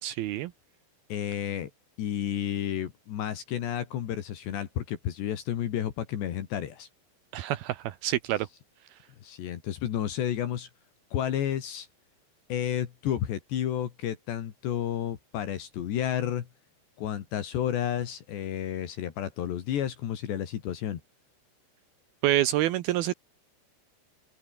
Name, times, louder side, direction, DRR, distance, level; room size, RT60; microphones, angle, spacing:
voice 1, 0.0-0.5 7.3-8.5 22.2-23.1, right 14 dB, 75° right, 2.4 m, -27 dB
voice 2, 1.1-1.7 2.0-6.9 9.2-10.7 11.1-11.9 12.5-16.5 17.0-21.0, left 10 dB, 65° left, 4.0 m, -31 dB
omnidirectional pair, 5.6 m